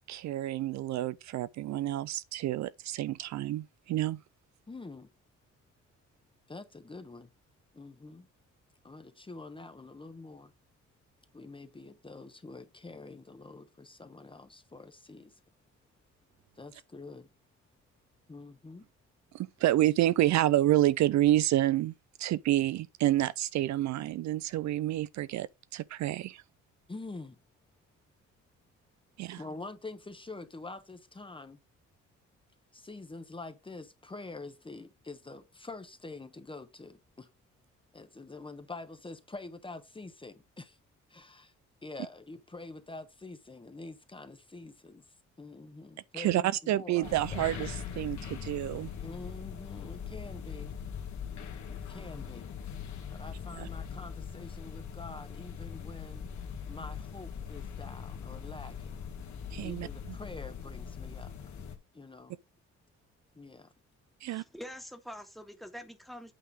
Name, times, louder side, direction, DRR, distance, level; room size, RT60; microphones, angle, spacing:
voice 1, 0.0-4.2 19.3-26.4 29.2-29.4 46.1-48.9 53.6-53.7 59.5-59.9 64.2-64.4, right 14 dB, 65° right, 0.4 m, -29 dB
voice 2, 4.7-5.1 6.5-7.3 7.7-8.3 8.8-10.5 11.3-15.4 16.6-17.3 18.3-18.9 26.9-27.4 29.4-31.6 32.7-37.3 37.9-40.8 41.1-41.5 41.8-45.1 45.4-47.4 49.0-50.7 51.7-52.5 53.1-56.3 56.7-59.0 59.6-61.3 61.9-62.4 63.3-63.7, left 3 dB, 15° left, 1.0 m, -46 dB
sound 1, 47.0-61.8, left 7 dB, 70° left, 1.8 m, -41 dB
voice 3, 64.3-66.3, equal, ahead, 1.6 m, -45 dB
8.5 x 3.6 x 5.0 m
cardioid pair, 90°, 30 cm